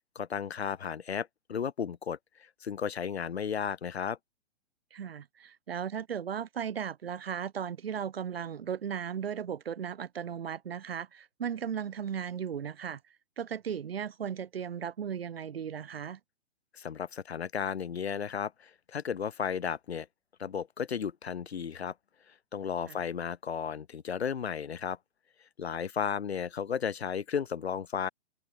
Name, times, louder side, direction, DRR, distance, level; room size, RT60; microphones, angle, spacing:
voice 1, 0.1-2.2 2.6-4.2 16.7-20.1 20.4-21.9 22.5-25.0 25.6-28.1, left 7 dB, 75° left, 1.0 m, -34 dB
voice 2, 4.9-13.0 13.4-16.2 22.9-23.0, right 8 dB, 65° right, 1.9 m, -36 dB
figure-of-eight pair, 120°, 32 cm